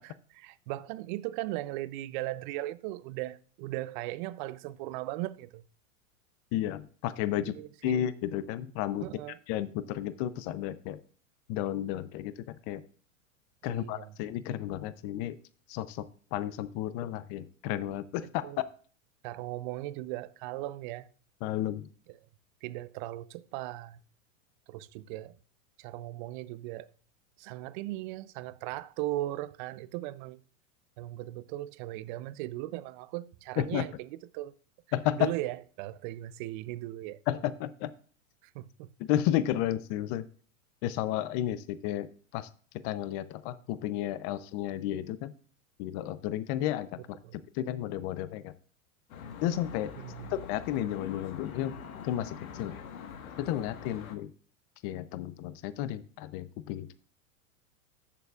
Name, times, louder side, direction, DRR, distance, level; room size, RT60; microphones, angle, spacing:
voice 1, 0.0-5.6 7.4-8.0 9.0-9.4 13.6-14.1 18.4-18.6 19.2-21.1 22.1-22.2 22.6-24.0 24.7-25.3 25.8-26.9 27.4-30.4 31.0-34.5 35.2-37.2 38.5-38.9 47.2-47.4 50.0-50.4, right 16 dB, 40° right, 0.4 m, -38 dB
voice 2, 6.5-7.5 7.8-9.1 9.5-11.0 11.5-12.8 13.6-15.4 15.7-16.1 16.3-18.4 21.4-21.9 33.6-33.9 34.9-35.3 37.3-37.9 39.0-40.2 40.8-42.5 42.8-45.3 45.8-47.2 47.6-48.5 49.4-49.9 50.3-51.8 52.0-52.8 53.4-54.3 54.8-56.9, left 12 dB, 35° left, 0.5 m, -32 dB
Traffic noise roadway noise, 49.1-54.2, left 7 dB, 80° left, 1.5 m, -44 dB
14.5 x 6.7 x 2.3 m
hypercardioid pair, 130°, 41 cm